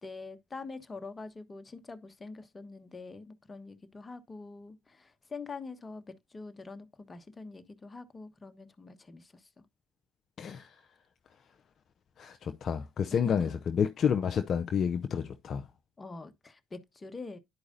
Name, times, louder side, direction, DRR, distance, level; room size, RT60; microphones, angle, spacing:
voice 1, 0.0-9.5 13.1-13.5 16.0-17.4, left 3 dB, 30° left, 1.2 m, -44 dB
voice 2, 10.4-10.7 12.2-15.7, left 7 dB, 55° left, 0.5 m, -30 dB
10.5 x 4.8 x 2.6 m
hypercardioid pair, 50°, 0 cm